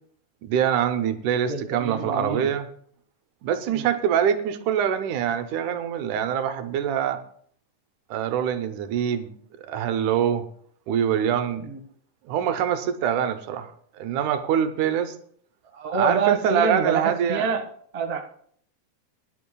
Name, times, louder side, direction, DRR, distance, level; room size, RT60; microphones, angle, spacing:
voice 1, 0.4-2.7 3.4-7.2 8.1-9.3 9.6-10.5 10.9-11.6 12.3-15.2 15.9-17.5, right 9 dB, 85° right, 9 dB, 2.3 m, -24 dB
voice 2, 1.5-2.5 3.7-3.9 11.6-11.8 15.7-17.7 17.9-18.2, right 5 dB, 30° right, 1 dB, 0.7 m, -26 dB
22.0 x 11.0 x 2.3 m, 0.62 s
omnidirectional pair, 3.4 m